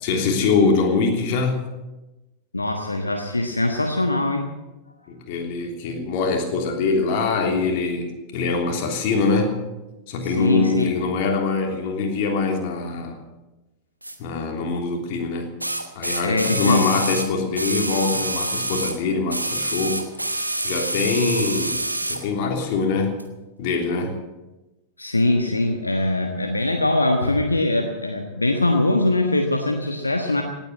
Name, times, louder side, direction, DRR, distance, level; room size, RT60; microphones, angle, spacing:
voice 1, 0.0-1.7 5.1-9.6 10.1-13.2 14.2-15.5 15.9-23.2 23.6-24.2, left 4 dB, 45° left, 2 dB, 3.2 m, -23 dB
voice 2, 2.5-4.5 10.2-10.9 16.2-16.8 25.0-30.4, left 2 dB, 80° left, 4 dB, 1.4 m, -22 dB
sound 1, 14.0-14.2 15.6-19.0 19.3-22.3 23.2-23.3, right 1 dB, 85° right, 1.2 m, -27 dB
18.0 x 9.0 x 8.7 m, 1.1 s
figure-of-eight pair, 90°, 0 cm